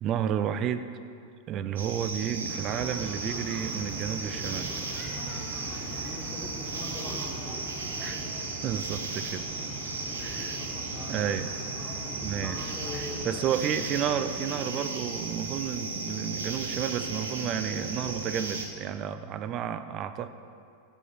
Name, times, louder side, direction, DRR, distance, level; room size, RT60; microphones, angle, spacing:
voice 1, 0.0-0.9 1.5-4.8 8.0-8.2 8.6-9.5 10.2-10.6 11.1-11.5 12.1-12.7 12.9-20.3, right 9 dB, 35° right, 12 dB, 0.4 m, -31 dB
sound 1, 1.8-18.7, right 3 dB, 65° right, 1.0 m, -35 dB
sound 2, 2.5-13.3, right 1 dB, 10° right, 1.3 m, -42 dB
voice 2, 6.0-7.7 10.2-12.0 12.4-13.7, left 2 dB, 20° left, -3 dB, 1.0 m, -43 dB
9.2 x 5.4 x 6.1 m, 2.3 s
figure-of-eight pair, 90°, 0 cm